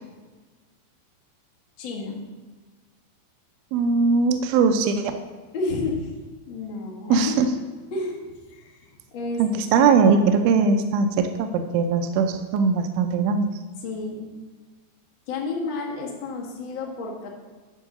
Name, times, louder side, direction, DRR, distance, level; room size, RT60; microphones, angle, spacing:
voice 1, 1.8-2.2 5.5-6.1 6.5-7.4 7.9-8.2 8.5-9.4 9.7-9.8 13.8-14.3 15.3-17.3, left 3 dB, 75° left, -2 dB, 1.1 m, -31 dB
voice 2, 3.7-5.1 7.1-7.5 9.4-13.5, right 5 dB, 80° right, 6 dB, 2.2 m, -20 dB
11.0 x 3.7 x 6.6 m, 1.3 s
omnidirectional pair, 4.7 m